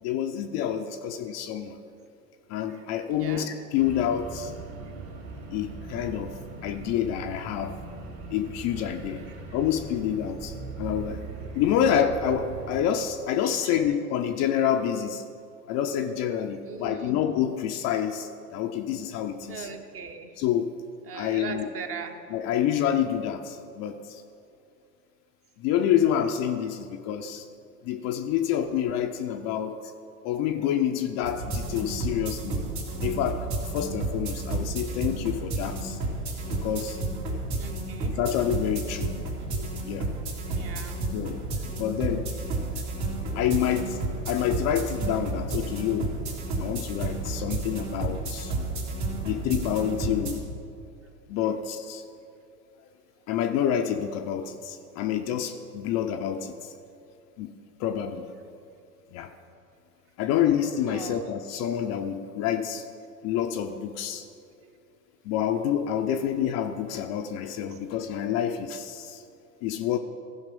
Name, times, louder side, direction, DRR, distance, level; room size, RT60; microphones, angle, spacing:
voice 1, 0.0-1.8 2.5-4.5 5.5-7.8 8.3-9.2 9.5-11.2 11.5-15.2 15.7-19.7 20.4-20.8 21.1-21.7 22.3-24.2 25.6-27.5 27.8-29.9 30.2-32.6 33.0-33.5 33.7-36.0 36.5-37.0 38.1-39.1 39.6-40.1 41.1-41.4 41.7-42.3 43.4-46.1 46.6-48.5 49.2-50.5 51.3-52.0 53.3-56.7 57.4-57.5 57.8-58.6 59.1-59.3 60.2-62.9 63.2-64.3 65.2-69.2 69.6-70.0, left 9 dB, 35° left, 6 dB, 0.5 m, -28 dB
voice 2, 3.1-3.5 13.4-13.8 16.6-17.2 19.5-20.3 21.1-22.2 37.6-38.2 40.5-41.0 60.9-61.3 67.7-67.8, right 6 dB, 30° right, 6 dB, 0.8 m, -39 dB
sound 1, 3.7-12.8, right 3 dB, 60° right, 2.5 m, -40 dB
sound 2, 31.2-50.4, right 2 dB, 80° right, 2.9 m, -31 dB
15.0 x 5.4 x 5.3 m, 2.5 s
hypercardioid pair, 105°, 47 cm